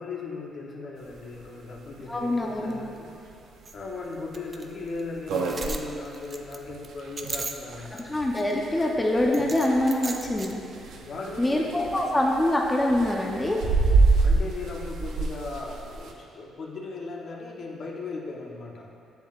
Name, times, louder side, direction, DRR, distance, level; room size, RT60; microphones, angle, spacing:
voice 1, 0.0-3.3 3.7-8.0 11.0-12.2 14.2-18.9, left 3 dB, 55° left, -1 dB, 0.9 m, -37 dB
sound 1, 1.1-1.2 1.4-1.5 1.9-2.0 2.5-2.8 3.3-3.4 3.9-4.0 4.3-4.4 4.8-4.9 5.1-16.1, right 3 dB, 75° right, 0.6 m, -27 dB
voice 2, 2.1-2.8 8.0-10.6 11.4-13.6, left 1 dB, 15° left, -1 dB, 0.7 m, -24 dB
sound 2, 2.7-2.8 3.1-3.2 3.6-3.7 4.3-4.6 5.0-5.1 5.3-8.0 8.3-8.9 9.3-10.5, right 3 dB, 35° right, 0.4 m, -36 dB
7.8 x 7.1 x 2.4 m, 2.6 s
cardioid pair, 90°, 0 cm